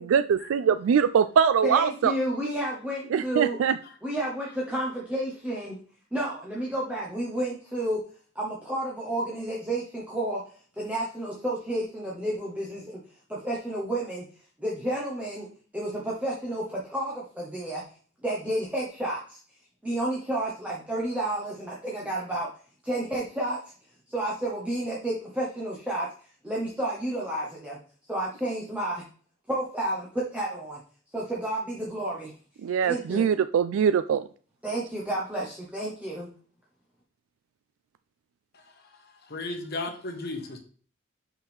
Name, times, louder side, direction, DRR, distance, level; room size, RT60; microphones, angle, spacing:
voice 1, 0.0-2.1 3.1-3.7 32.6-34.2, right 7 dB, 85° right, 0.3 m, -22 dB
voice 2, 1.6-3.6 4.0-5.8 6.1-8.0 8.3-10.4 10.8-13.0 13.3-14.2 14.6-15.5 15.7-17.8 18.2-19.4 19.8-22.5 22.8-23.7 24.1-26.1 26.4-27.8 28.1-29.0 29.5-30.8 31.1-32.3 32.8-33.3 34.6-36.3, right 1 dB, 5° right, 1.1 m, -31 dB
voice 3, 39.3-40.6, left 2 dB, 55° left, 1.3 m, -34 dB
6.0 x 5.6 x 3.5 m
head